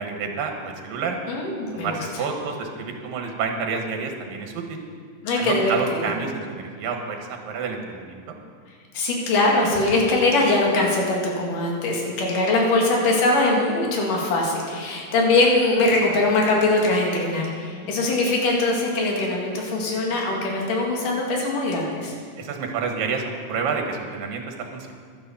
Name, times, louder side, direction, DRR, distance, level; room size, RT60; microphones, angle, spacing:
voice 1, 0.0-1.2 1.7-4.8 5.4-7.2 7.4-8.2 22.4-24.9, right 5 dB, 85° right, 3 dB, 3.2 m, -29 dB
voice 2, 1.3-2.2 5.2-6.1 8.9-22.2, left 2 dB, 70° left, -1 dB, 3.7 m, -22 dB
11.5 x 11.0 x 7.0 m, 2.1 s
omnidirectional pair, 3.9 m